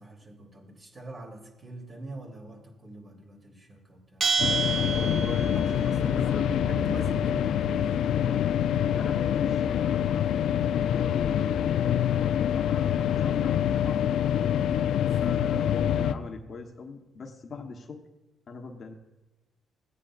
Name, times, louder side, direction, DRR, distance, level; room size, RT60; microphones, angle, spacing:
voice 1, 0.0-4.3 5.0-8.2 10.8-11.0 15.0-15.4 17.5-17.6, right 1 dB, 35° right, 0 dB, 3.0 m, -43 dB
Bell, 4.2-5.8, right 5 dB, 55° right, 0.8 m, -28 dB
sound 1, 4.4-16.1, left 10 dB, 80° left, 0.4 m, -26 dB
sound 2, 4.8-15.1, equal, 5° right, 1.1 m, -42 dB
voice 2, 5.0-5.7 6.1-6.6 8.9-14.2 14.4-14.6 15.2-18.0 18.5-18.9, left 4 dB, 50° left, 4 dB, 1.0 m, -40 dB
16.0 x 9.0 x 2.5 m, 1.1 s
cardioid pair, 90°, 0 cm